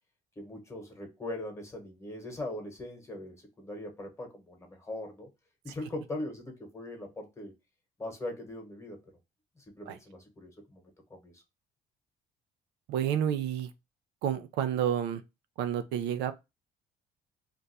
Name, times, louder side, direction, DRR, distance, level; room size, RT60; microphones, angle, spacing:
voice 1, 0.4-5.3 5.6-7.5 8.0-9.0 9.6-11.4, left 1 dB, 15° left, 1.1 m, -41 dB
voice 2, 12.9-13.7 14.2-15.2 15.6-16.3, right 9 dB, 90° right, 0.5 m, -30 dB
2.5 x 2.2 x 4.0 m
cardioid pair, 110°, 17 cm